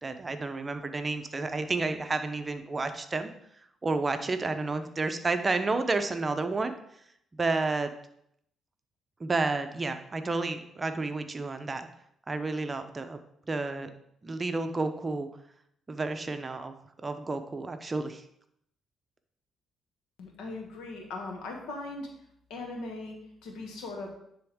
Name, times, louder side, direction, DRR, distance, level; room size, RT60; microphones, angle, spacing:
voice 1, 0.0-3.3 3.8-6.7 7.3-7.9 9.2-11.9 12.3-13.2 13.5-13.9 14.2-15.3 15.9-16.7 17.0-18.2, right 3 dB, 25° right, 8 dB, 0.6 m, -31 dB
voice 2, 20.2-22.1 22.5-24.1, left 2 dB, 85° left, 2 dB, 1.5 m, -39 dB
10.0 x 3.5 x 3.6 m, 0.74 s
cardioid pair, 90°, 0 cm